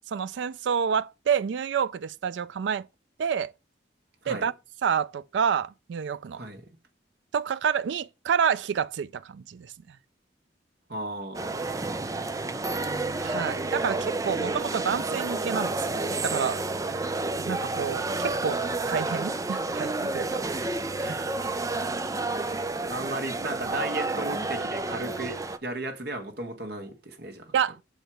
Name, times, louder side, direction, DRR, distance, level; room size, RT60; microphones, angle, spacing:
voice 1, 0.1-2.9 3.2-3.5 4.3-4.5 4.8-6.4 7.3-9.7 13.2-16.6 16.9-17.0 17.4-18.6 18.9-20.7 27.5-27.8, right 7 dB, 85° right, 0.4 m, -28 dB
voice 2, 6.3-6.6 10.9-11.9 12.5-12.6 21.0-21.3 22.3-27.6, right 2 dB, 65° right, 1.8 m, -35 dB
sound 1, 11.3-25.6, right 2 dB, 20° right, 0.5 m, -30 dB
6.4 x 4.8 x 6.3 m
head